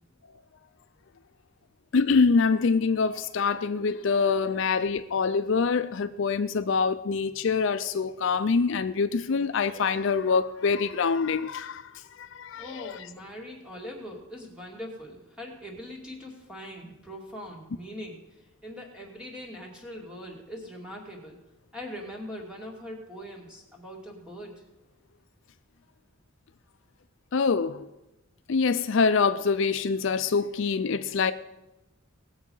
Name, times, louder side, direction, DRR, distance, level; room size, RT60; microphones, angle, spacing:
voice 1, 1.9-11.9 12.2-13.0 27.3-27.9 28.5-31.3, left 5 dB, 60° left, 0.4 m, -25 dB
voice 2, 12.6-21.4 21.7-24.5, equal, 5° right, 2.4 m, -41 dB
19.0 x 7.2 x 5.5 m
head